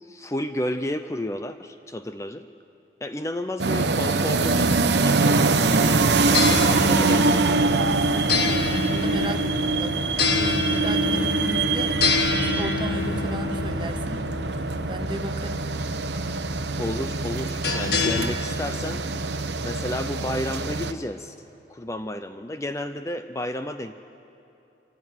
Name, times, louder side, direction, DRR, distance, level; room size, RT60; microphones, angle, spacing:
voice 1, 0.0-2.5 3.0-7.6 16.8-19.0 19.6-21.3 21.7-24.0, left 1 dB, 15° left, 9 dB, 0.5 m, -32 dB
sound 1, 3.6-20.9, right 3 dB, 80° right, 1.0 m, -24 dB
sound 2, 5.8-18.3, left 4 dB, 70° left, 1.7 m, -28 dB
voice 2, 8.1-12.0 12.5-14.2 14.9-15.7, right 1 dB, 25° right, 8 dB, 0.9 m, -35 dB
25.0 x 15.5 x 9.3 m, 2.8 s
head